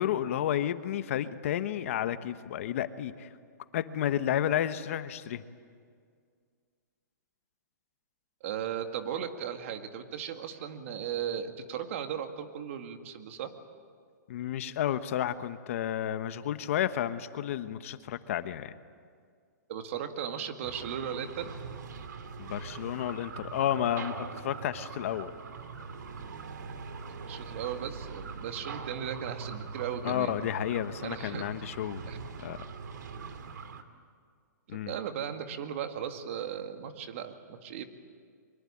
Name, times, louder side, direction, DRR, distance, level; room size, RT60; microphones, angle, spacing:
voice 1, 0.0-3.3 3.7-5.4 14.3-18.7 22.4-25.3 30.0-32.1 32.4-32.6 34.7-34.9, left 11 dB, 45° left, 12 dB, 1.1 m, -31 dB
voice 2, 8.4-13.5 19.7-21.5 27.3-30.3 31.0-31.4 32.1-32.2 34.8-37.8, right 8 dB, 45° right, 7 dB, 2.0 m, -36 dB
sound 1, 20.6-33.8, right 5 dB, 75° right, 2.4 m, -42 dB
24.0 x 23.5 x 8.7 m, 2.1 s
hypercardioid pair, 165°, 10 cm